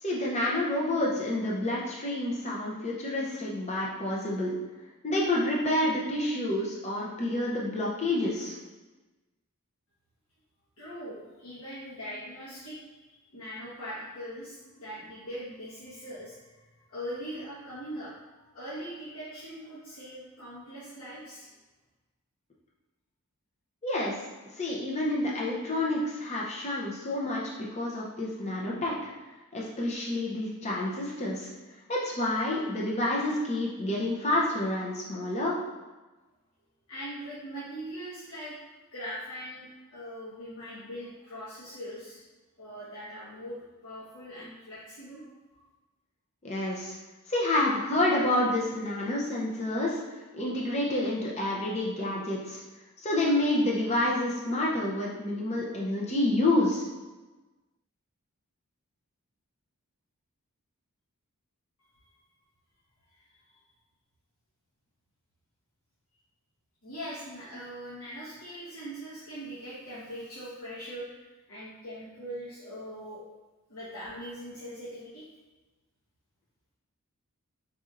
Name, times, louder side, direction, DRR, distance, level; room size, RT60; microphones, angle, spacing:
voice 1, 0.0-4.6 5.0-8.6 23.8-24.3 24.5-27.4 27.7-28.9 29.5-31.5 31.9-35.6 46.4-47.0 47.3-50.0 50.3-52.6 53.0-56.8, left 1 dB, 30° left, -4 dB, 0.6 m, -28 dB
voice 2, 10.8-13.0 13.3-16.6 16.9-18.2 18.5-21.5 36.9-38.5 38.9-39.6 39.9-42.2 42.6-45.2 63.1-63.2 66.8-71.2 71.5-73.2 73.7-75.2, equal, 80° left, -10 dB, 1.1 m, -41 dB
4.2 x 4.1 x 2.5 m, 1.2 s
head